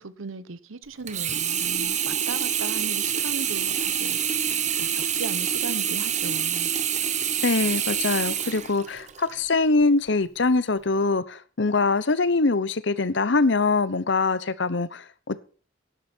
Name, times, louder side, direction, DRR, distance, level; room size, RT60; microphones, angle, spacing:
voice 1, 0.0-4.4 4.7-6.7, right 3 dB, 85° right, 0.9 m, -37 dB
Sink (filling or washing), 1.1-9.3 9.8-9.9, right 9 dB, 35° right, 0.9 m, -26 dB
voice 2, 7.4-15.4, left 3 dB, 60° left, 0.8 m, -23 dB
12.0 x 10.0 x 4.4 m
head